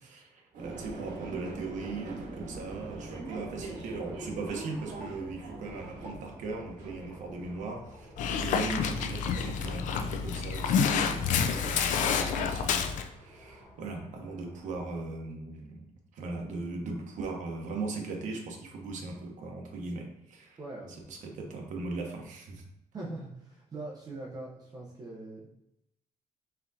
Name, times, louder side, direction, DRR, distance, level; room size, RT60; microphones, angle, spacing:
voice 1, 0.0-8.1 8.4-15.9 16.1-20.6 21.1-22.6, right 3 dB, 65° right, 1 dB, 0.9 m, -39 dB
sound 1, 0.5-7.9, right 2 dB, 85° right, 1.1 m, -43 dB
sound 2, 2.4-15.0, equal, 10° left, 0.8 m, -52 dB
Dog, 8.2-13.1, left 6 dB, 70° left, 0.4 m, -28 dB
voice 2, 20.6-21.1 22.9-25.5, right 2 dB, 30° right, -5 dB, 0.7 m, -42 dB
4.3 x 3.7 x 2.7 m, 0.82 s
cardioid pair, 170°, 14 cm